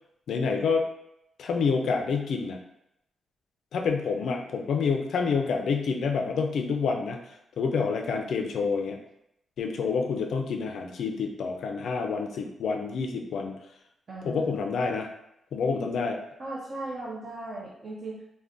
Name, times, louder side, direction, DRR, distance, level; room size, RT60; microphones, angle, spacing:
voice 1, 0.3-0.8 1.4-2.6 3.7-7.2 7.6-9.0 9.6-13.5 14.2-15.1 15.5-16.2, left 5 dB, 70° left, 3 dB, 0.4 m, -28 dB
voice 2, 14.1-14.5 16.4-18.2, right 2 dB, 35° right, -5 dB, 0.5 m, -37 dB
2.5 x 2.2 x 3.4 m, 0.83 s
wide cardioid pair, 155°, 0 cm